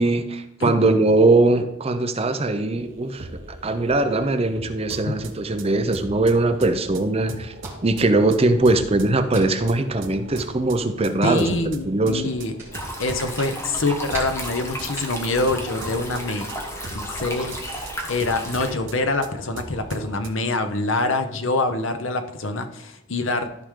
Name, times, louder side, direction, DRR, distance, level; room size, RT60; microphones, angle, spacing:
voice 1, 0.0-7.5 7.8-11.5 11.9-12.3, right 2 dB, 30° right, 8 dB, 0.6 m, -21 dB
voice 2, 0.6-0.9 5.0-5.1 11.2-12.5 13.0-16.5 16.9-23.5, left 2 dB, 70° left, 7 dB, 0.9 m, -25 dB
sound 1, 2.7-20.3, right 2 dB, 65° right, 1.0 m, -40 dB
sound 2, 12.7-18.7, equal, 15° left, 1.2 m, -34 dB
sound 3, 13.3-16.8, right 3 dB, 10° right, 3.1 m, -45 dB
13.0 x 5.0 x 3.7 m, 0.89 s
head